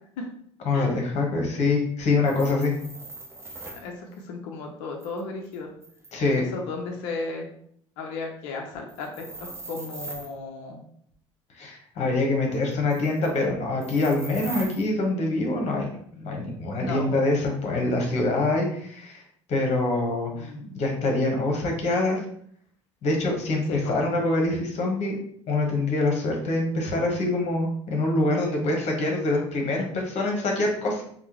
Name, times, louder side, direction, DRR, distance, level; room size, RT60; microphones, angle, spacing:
voice 1, 0.6-2.7 6.1-6.4 11.6-19.2 19.5-22.2 23.0-25.2 25.5-31.0, left 2 dB, 45° left, 1 dB, 1.0 m, -25 dB
sound 1, 2.2-3.9 5.0-6.3 8.9-10.3 12.7-13.4 13.8-14.9, right 2 dB, 15° right, 0.6 m, -41 dB
voice 2, 4.3-5.7 6.4-7.5 8.0-10.8 16.8-17.0 20.3-20.8 23.7-23.9, left 3 dB, 60° left, 1 dB, 0.5 m, -35 dB
3.5 x 2.0 x 2.9 m, 0.65 s
figure-of-eight pair, 60°, 15 cm